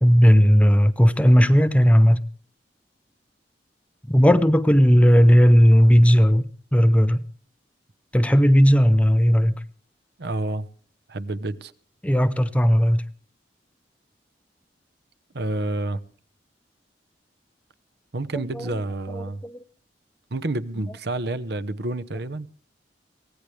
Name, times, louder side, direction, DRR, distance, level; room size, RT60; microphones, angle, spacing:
voice 1, 0.0-2.2 4.1-7.2 8.1-9.5 12.0-13.0 18.3-18.6 19.1-19.6, equal, 10° left, 0.7 m, -16 dB
voice 2, 10.2-10.7 11.1-11.7 15.3-16.0 18.1-19.4 20.3-22.5, right 2 dB, 65° right, 0.9 m, -29 dB
23.5 x 17.0 x 3.3 m
head